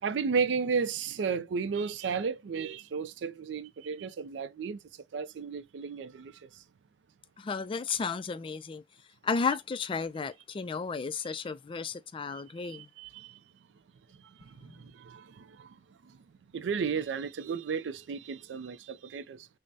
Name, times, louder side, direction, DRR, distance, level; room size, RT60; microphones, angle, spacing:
voice 1, 0.0-4.8 5.1-6.6 12.3-13.4 14.2-15.8 16.0-16.2 16.5-19.5, right 5 dB, 85° right, 0.4 m, -34 dB
voice 2, 7.4-8.8 9.2-12.9, left 5 dB, 30° left, 0.3 m, -33 dB
5.2 x 2.0 x 2.7 m
head